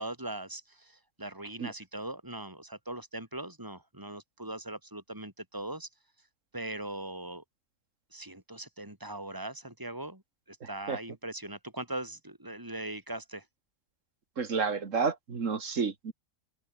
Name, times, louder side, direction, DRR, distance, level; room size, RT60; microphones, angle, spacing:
voice 1, 0.0-5.9 6.5-7.4 8.1-10.2 10.5-13.4, right 1 dB, 15° right, 4.6 m, -40 dB
voice 2, 10.6-11.0 14.4-16.1, right 5 dB, 85° right, 2.3 m, -31 dB
open air
omnidirectional pair, 1.3 m